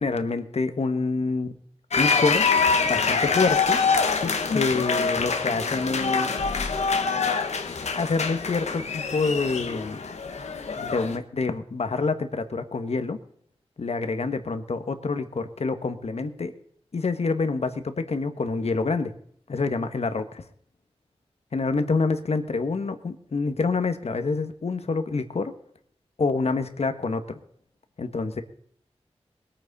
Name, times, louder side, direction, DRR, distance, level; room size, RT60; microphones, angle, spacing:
voice 1, 0.0-1.6 2.0-2.5 2.9-3.8 4.5-6.3 7.9-10.0 10.8-13.2 13.8-16.5 16.9-19.1 19.5-20.4 21.5-25.5 26.2-27.4 28.0-28.4, left 4 dB, 70° left, 9 dB, 1.4 m, -27 dB
sound 1, 1.9-11.2, left 5 dB, 85° left, 1.3 m, -25 dB
20.5 x 9.1 x 4.2 m, 0.65 s
wide cardioid pair, 60°, 11 cm